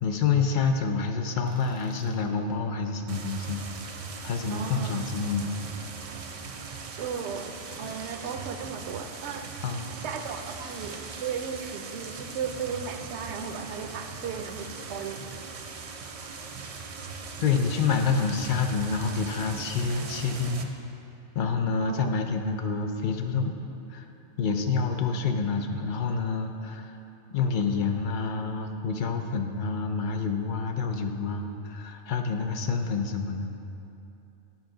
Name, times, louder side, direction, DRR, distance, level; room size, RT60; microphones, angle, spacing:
voice 1, 0.0-3.8 4.2-5.6 9.6-9.9 17.4-20.7 21.3-23.6 23.9-24.0 24.4-27.0 27.3-33.5, left 5 dB, 55° left, 5 dB, 0.6 m, -28 dB
Tools, 1.4-2.3 4.4-5.3 7.4-8.3 10.3-11.3, right 1 dB, 5° right, 0.8 m, -52 dB
sound 1, 3.1-20.6, right 4 dB, 55° right, 0.4 m, -40 dB
voice 2, 4.5-5.0 6.9-9.5 10.0-15.5 21.8-22.2, right 6 dB, 75° right, 7 dB, 0.9 m, -36 dB
10.5 x 5.8 x 3.8 m, 2.8 s
omnidirectional pair, 1.2 m